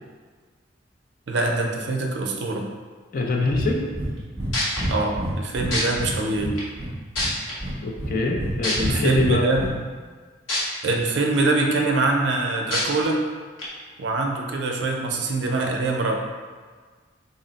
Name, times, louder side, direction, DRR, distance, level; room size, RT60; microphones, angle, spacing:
voice 1, 1.3-2.7 4.9-6.6 8.8-9.6 10.8-13.2 14.0-16.2, right 2 dB, 60° right, 2 dB, 0.4 m, -24 dB
voice 2, 3.1-3.8 7.8-9.5, left 3 dB, 45° left, 1 dB, 0.4 m, -24 dB
Breathing, 3.5-3.7 3.9-4.1 4.4-4.5 4.8-6.1 6.4-7.3 7.6-8.5 8.8-9.7, right 1 dB, 10° right, 0.8 m, -29 dB
sound 1, 4.2-4.3 4.5-4.8 5.7-5.8 6.6-6.7 7.1-7.5 8.6-8.7 10.5-10.6 11.1-11.2 12.7-12.8 13.6-13.7, left 1 dB, 90° left, 1.0 m, -24 dB
3.9 x 2.1 x 3.9 m, 1.5 s
head